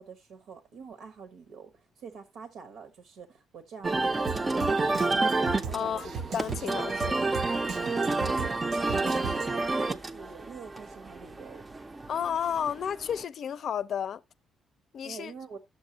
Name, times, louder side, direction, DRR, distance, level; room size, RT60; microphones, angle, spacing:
voice 1, 0.0-4.9 5.6-6.2 6.6-6.7 7.8-11.6 15.0-15.6, right 5 dB, 80° right, 1.2 m, -46 dB
sound 1, 3.8-13.2, right 3 dB, 25° right, 0.6 m, -29 dB
Drum kit, 4.3-9.7, right 6 dB, 65° right, 0.8 m, -38 dB
voice 2, 5.7-7.3 12.1-14.2 14.9-15.3, left 8 dB, 60° left, 0.5 m, -32 dB
10.5 x 7.2 x 2.8 m
cardioid pair, 90°, 0 cm